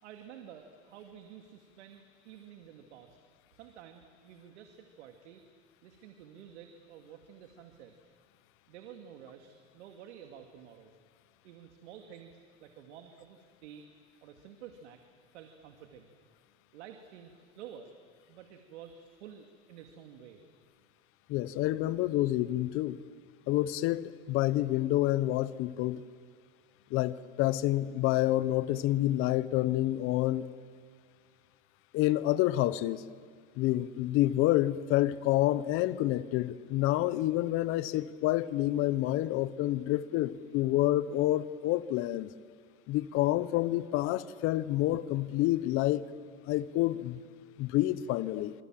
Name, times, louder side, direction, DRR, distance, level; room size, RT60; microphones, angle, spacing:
voice 1, 0.0-3.2 3.5-5.4 5.8-8.1 8.7-10.9 11.4-13.8 14.2-15.0 15.3-16.1 16.7-17.9 18.3-20.4, right 8 dB, 70° right, 2.3 m, -51 dB
voice 2, 21.3-23.0 23.5-26.0 26.9-30.5 31.9-33.0 33.6-42.3 42.9-46.0 46.5-47.2 47.6-48.5, left 15 dB, 35° left, 0.9 m, -28 dB
27.0 x 25.5 x 7.6 m
supercardioid pair, 140°, 35 cm